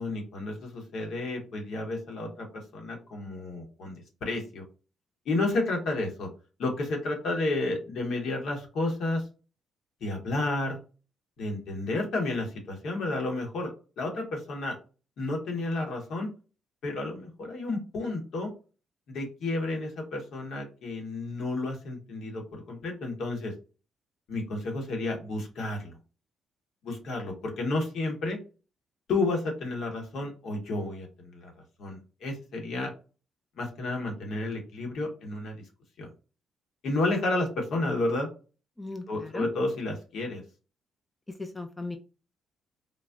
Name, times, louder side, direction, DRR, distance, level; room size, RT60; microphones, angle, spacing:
voice 1, 0.0-2.5 2.7-4.6 5.2-6.3 6.6-9.2 10.0-10.8 11.4-13.7 14.0-14.8 15.2-16.3 16.8-18.5 19.1-23.5 24.3-26.0 26.8-28.4 29.1-31.5 31.8-32.9 33.6-35.6 36.0-36.1 36.8-38.3 39.1-40.4, left 2 dB, 70° left, 2 dB, 1.1 m, -31 dB
voice 2, 38.8-39.5 41.3-42.0, left 2 dB, 15° left, 5 dB, 0.4 m, -37 dB
3.9 x 2.0 x 2.3 m, 0.34 s
cardioid pair, 90°, 0 cm